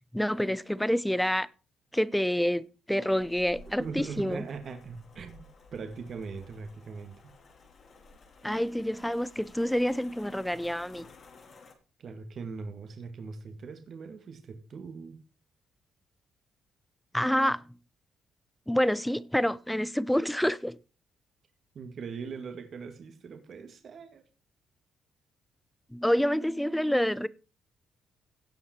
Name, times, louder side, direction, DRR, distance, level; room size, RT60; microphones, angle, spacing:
voice 1, 0.1-1.5 1.9-4.4 8.4-11.1 17.1-17.6 18.7-20.8 25.9-27.3, equal, 5° left, 0.7 m, -27 dB
sound 1, 3.1-11.7, left 3 dB, 50° left, 2.8 m, -54 dB
voice 2, 3.8-5.4 5.7-7.2 12.0-15.2 21.7-24.2, right 5 dB, 55° right, 2.0 m, -40 dB
16.5 x 5.7 x 4.6 m
cardioid pair, 90°, 0 cm